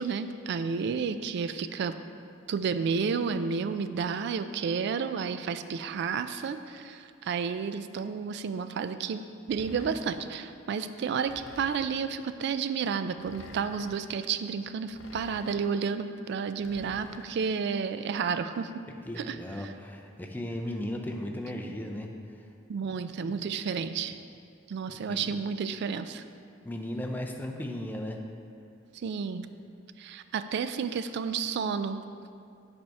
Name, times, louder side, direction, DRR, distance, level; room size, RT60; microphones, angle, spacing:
voice 1, 0.0-1.9 2.5-9.2 9.5-18.7 19.2-19.7 22.7-24.2 24.7-26.2 28.9-29.5 30.0-32.0, right 6 dB, 60° right, 11 dB, 0.3 m, -31 dB
sound 1, 9.5-10.4 11.3-12.2 13.2-14.1 14.9-15.8 16.6-17.6, left 2 dB, 70° left, 0.6 m, -49 dB
voice 2, 18.9-22.1 22.9-23.5 24.9-25.3 26.6-28.2, left 1 dB, 10° left, 2 dB, 0.5 m, -36 dB
7.8 x 3.5 x 5.3 m, 2.4 s
head